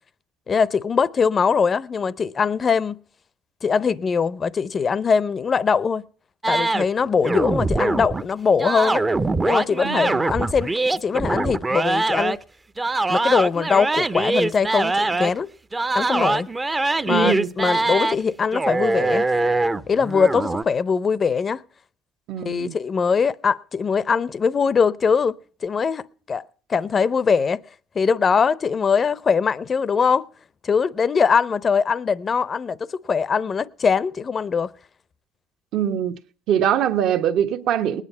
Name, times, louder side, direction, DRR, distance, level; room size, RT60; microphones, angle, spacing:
voice 1, 0.5-3.0 3.6-6.0 6.5-9.0 9.5-12.4 13.1-15.5 15.9-16.5 17.0-19.3 19.9-21.6 22.4-25.3 25.6-26.4 26.7-27.6 27.9-30.3 30.6-34.7, left 6 dB, 30° left, 0.6 m, -21 dB
sound 1, 6.4-8.2 8.6-12.4 12.8-15.4 15.7-18.2 18.5-20.6, right 2 dB, 15° right, 0.6 m, -23 dB
voice 2, 9.8-10.2 17.1-17.5 22.3-22.7 35.7-36.2 36.5-38.0, right 9 dB, 60° right, 1.1 m, -23 dB
19.5 x 9.8 x 5.5 m
cardioid pair, 130°, 0 cm